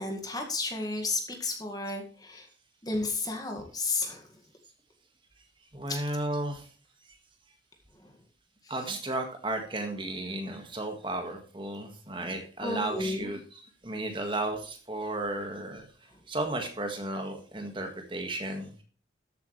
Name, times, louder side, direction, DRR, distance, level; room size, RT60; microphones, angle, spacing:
voice 1, 0.0-2.5 2.8-4.3 5.9-6.0 7.9-8.1 8.6-8.9 12.2-12.3 12.6-13.4 16.1-16.2, left 3 dB, 20° left, 3 dB, 1.9 m, -33 dB
voice 2, 5.7-6.7 8.7-15.9 16.3-18.7, right 2 dB, 25° right, 4 dB, 1.7 m, -34 dB
13.5 x 8.2 x 3.2 m, 0.40 s
head